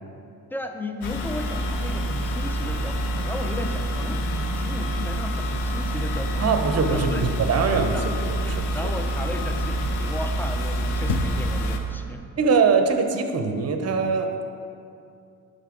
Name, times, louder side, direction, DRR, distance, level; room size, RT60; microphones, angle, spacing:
voice 1, 0.5-4.2 4.5-6.6 6.9-7.4 7.7-8.0 8.4-12.2, left 1 dB, 5° left, 5 dB, 0.4 m, -35 dB
sound 1, 1.0-11.8, equal, 60° left, 0.7 m, -27 dB
Car / Idling / Accelerating revving vroom, 1.7-11.2, left 1 dB, 90° left, 1.3 m, -45 dB
voice 2, 6.4-7.9 8.5-8.9 12.4-14.3, right 5 dB, 35° right, 6 dB, 0.7 m, -22 dB
5.6 x 5.5 x 3.7 m, 2.5 s
hypercardioid pair, 45°, 46 cm